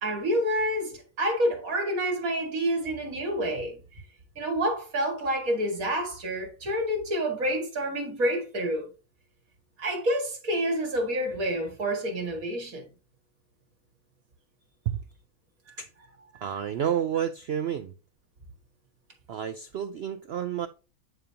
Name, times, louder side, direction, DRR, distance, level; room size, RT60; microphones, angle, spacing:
voice 1, 0.0-3.8 4.4-8.9 9.8-12.9, equal, 60° right, 2.3 m, -28 dB
voice 2, 16.4-17.9 19.3-20.7, right 9 dB, 80° right, 0.5 m, -30 dB
9.4 x 5.1 x 2.8 m
omnidirectional pair, 1.7 m